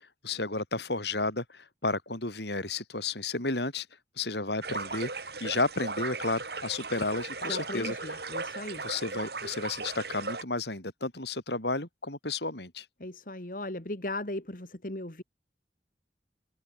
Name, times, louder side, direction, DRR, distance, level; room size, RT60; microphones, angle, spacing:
voice 1, 0.2-3.9 4.2-5.1 5.4-8.0 8.8-12.9, left 3 dB, 70° left, 5.6 m, -32 dB
sound 1, 4.6-10.4, right 3 dB, 65° right, 6.8 m, -37 dB
voice 2, 7.4-8.9 13.0-15.2, left 1 dB, 50° left, 2.3 m, -37 dB
head